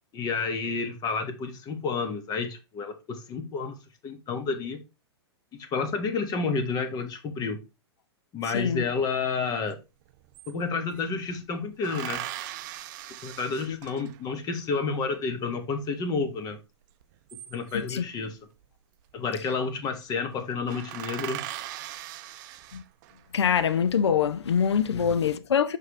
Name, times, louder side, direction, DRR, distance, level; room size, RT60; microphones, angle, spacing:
voice 1, 0.1-3.7 4.0-4.8 5.6-7.6 8.3-9.8 10.5-12.2 13.2-16.6 17.5-18.4 19.1-21.4 24.9-25.2, left 4 dB, 30° left, 1.5 m, -30 dB
voice 2, 8.5-8.8 13.7-13.8 17.9-18.0 22.7-22.8 23.3-25.8, left 7 dB, 75° left, 0.7 m, -24 dB
sound 1, 9.7-9.8 10.0-11.1 11.8-14.3 17.0-18.0 19.2-19.5 19.8-20.0 20.3-20.4 20.7-23.2 23.8-24.5, right 14 dB, 45° right, 0.6 m, -39 dB
6.5 x 5.5 x 3.2 m
hypercardioid pair, 110°, 14 cm